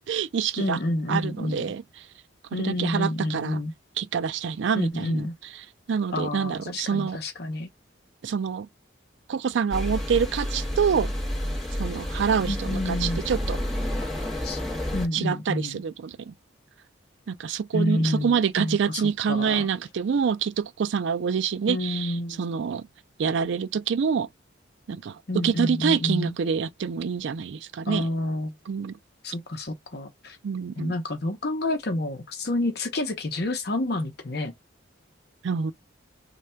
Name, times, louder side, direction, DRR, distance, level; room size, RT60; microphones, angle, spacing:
voice 1, 0.1-0.8 1.1-1.8 2.5-3.6 4.0-5.3 5.9-7.2 8.2-8.7 9.3-11.1 11.8-13.6 15.1-16.3 17.3-22.9 23.2-24.3 24.9-28.1 28.7-29.0 30.4-30.9 35.4-35.7, right 6 dB, 70° right, 0.4 m, -26 dB
voice 2, 0.6-1.6 2.5-3.7 4.7-5.3 6.1-7.7 12.5-13.3 14.4-14.6 14.9-15.8 17.7-19.7 21.7-22.4 25.3-26.3 27.9-28.5 29.2-30.4 30.8-34.5, left 1 dB, 55° left, 0.8 m, -29 dB
sound 1, 9.7-15.1, equal, ahead, 1.4 m, -30 dB
3.2 x 2.3 x 4.3 m
head